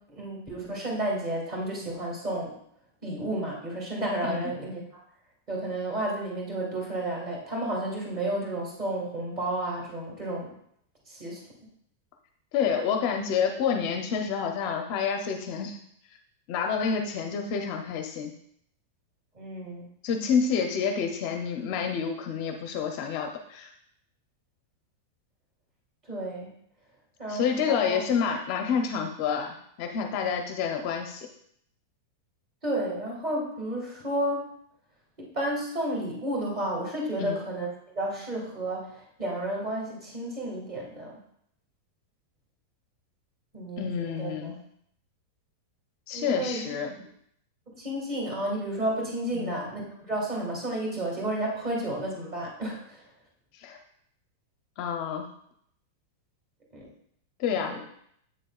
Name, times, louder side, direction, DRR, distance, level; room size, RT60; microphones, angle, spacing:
voice 1, 0.1-2.5 3.0-4.8 5.5-10.5 11.1-11.4 19.4-19.9 26.1-26.5 27.2-28.0 32.6-34.5 35.2-37.7 38.0-41.1 43.5-44.5 46.1-46.7 47.7-53.0 56.7-56.9 57.7-57.8, right 1 dB, 25° right, -1 dB, 1.8 m, -32 dB
voice 2, 12.5-15.8 16.5-18.3 20.0-23.7 27.3-31.3 37.2-37.4 43.8-44.6 46.1-46.9 49.3-49.6 53.5-53.8 54.8-55.3 57.4-57.8, left 6 dB, 35° left, 4 dB, 0.5 m, -28 dB
7.6 x 6.5 x 2.3 m, 0.69 s
supercardioid pair, 175°, 0 cm